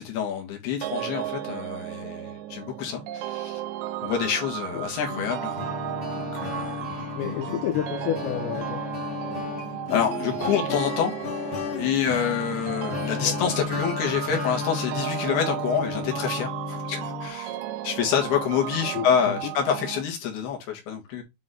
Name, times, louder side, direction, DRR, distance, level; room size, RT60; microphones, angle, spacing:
voice 1, 0.0-3.6 4.0-5.6 6.2-7.1 9.9-11.1 11.7-17.6 17.8-21.2, left 8 dB, 60° left, 3.7 m, -27 dB
sound 1, 0.8-20.0, right 14 dB, 80° right, 2.7 m, -34 dB
sound 2, 5.1-17.3, left 6 dB, 45° left, 1.6 m, -34 dB
voice 2, 7.2-8.8 13.2-13.4 18.9-19.5, left 12 dB, 80° left, 2.8 m, -30 dB
9.8 x 3.9 x 3.9 m
omnidirectional pair, 5.4 m